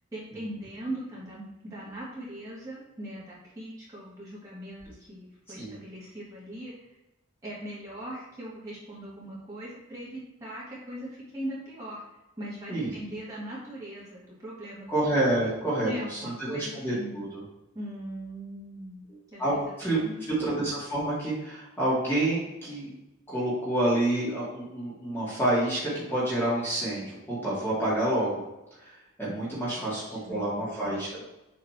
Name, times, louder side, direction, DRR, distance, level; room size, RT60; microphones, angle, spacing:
voice 1, 0.1-4.8 5.1-6.7 7.4-12.0 12.4-14.9 15.2-15.4 15.8-17.2 17.7-19.0 19.3-19.6 19.9-20.4 29.7-30.4 30.7-31.2, right 1 dB, 15° right, -8 dB, 2.6 m, -40 dB
voice 2, 14.9-17.4 19.4-20.0 20.4-22.9 23.3-28.4 28.8-31.1, right 1 dB, 10° left, -9 dB, 2.2 m, -28 dB
7.6 x 4.0 x 4.5 m, 0.96 s
head